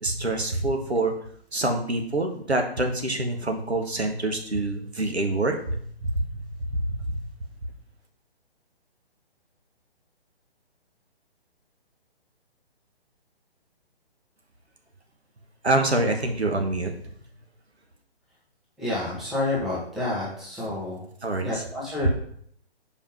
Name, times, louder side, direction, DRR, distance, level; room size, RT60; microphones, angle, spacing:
voice 1, 0.0-1.1 1.5-7.2 15.6-16.9 21.2-21.5, right 2 dB, 85° right, 4 dB, 1.3 m, -26 dB
voice 2, 18.8-21.1 21.4-22.1, left 2 dB, ahead, -7 dB, 0.5 m, -29 dB
5.1 x 4.9 x 5.0 m, 0.64 s
figure-of-eight pair, 135°, 32 cm